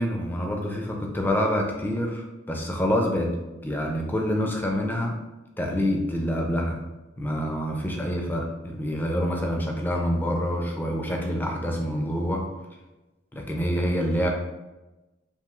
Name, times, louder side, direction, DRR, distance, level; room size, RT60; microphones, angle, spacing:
voice 1, 0.0-3.3 3.6-5.2 5.6-6.8 7.2-12.4 13.3-14.3, equal, 10° left, 1 dB, 0.3 m, -26 dB
2.9 x 2.7 x 2.3 m, 1.1 s
head